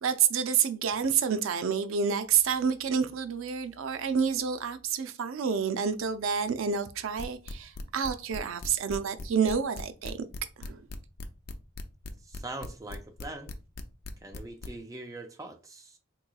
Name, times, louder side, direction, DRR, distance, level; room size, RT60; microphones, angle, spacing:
voice 1, 0.0-10.3 10.6-10.8, right 7 dB, 80° right, 0.4 m, -28 dB
sound 1, 7.2-14.7, left 2 dB, 50° left, 0.4 m, -39 dB
voice 2, 12.2-13.6 14.2-16.0, right 2 dB, 15° right, 0.4 m, -42 dB
3.7 x 3.0 x 2.2 m
head